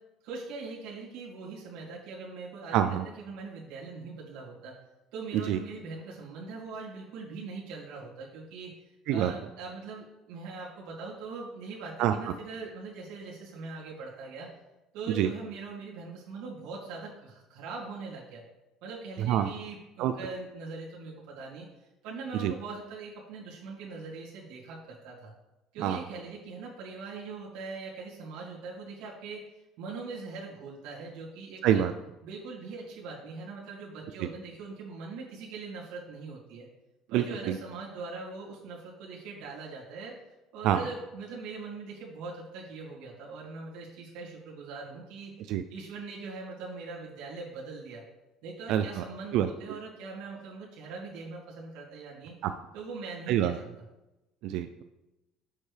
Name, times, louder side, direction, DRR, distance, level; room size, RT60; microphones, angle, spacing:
voice 1, 0.2-4.7 5.1-14.5 14.9-18.4 18.8-25.3 25.7-29.5 29.8-31.8 32.2-36.7 37.1-40.2 40.5-45.3 45.7-48.0 48.4-52.3 52.7-53.6, right 4 dB, 75° right, -6 dB, 2.1 m, -41 dB
voice 2, 2.7-3.0 5.5-5.6 9.1-9.3 12.0-12.1 15.2-15.3 19.3-19.5 20.0-20.1 22.3-22.5 25.8-26.0 31.6-31.9 37.1-37.6 40.6-40.8 45.5-45.6 48.7-49.0 49.3-49.5 52.4-52.5 53.3-53.6 54.4-54.8, right 11 dB, 60° right, 9 dB, 0.3 m, -26 dB
7.3 x 6.6 x 3.3 m, 0.98 s
cardioid pair, 170°, 0 cm